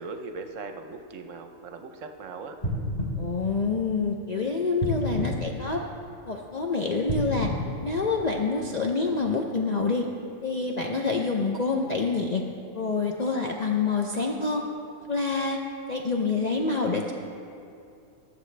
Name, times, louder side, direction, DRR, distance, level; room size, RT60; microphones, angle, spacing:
voice 1, 0.0-2.6, right 4 dB, 65° right, 6 dB, 1.0 m, -39 dB
sound 1, 2.6-4.2 4.8-6.3 7.0-8.7 9.2-9.3, equal, 15° left, 2.4 m, -31 dB
voice 2, 3.2-5.8 6.3-7.5 7.8-10.1 10.4-12.4 12.7-14.6 15.1-15.6 15.9-17.1, left 4 dB, 50° left, 1 dB, 0.5 m, -27 dB
20.5 x 6.9 x 3.3 m, 2.6 s
omnidirectional pair, 1.5 m